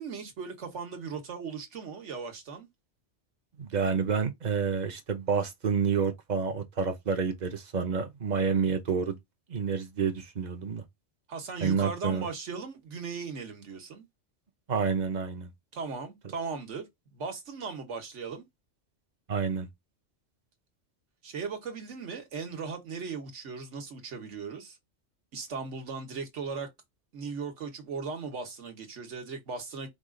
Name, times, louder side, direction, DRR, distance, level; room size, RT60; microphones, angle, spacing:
voice 1, 0.0-2.7 11.3-14.1 15.7-16.9 17.1-18.5 21.2-24.8 25.3-26.7 27.1-29.9, right 5 dB, 75° right, 1.5 m, -37 dB
voice 2, 3.6-9.2 9.5-10.8 11.6-12.3 14.7-15.5 19.3-19.7, right 6 dB, 40° right, 0.8 m, -29 dB
4.9 x 2.4 x 3.7 m
omnidirectional pair, 1.2 m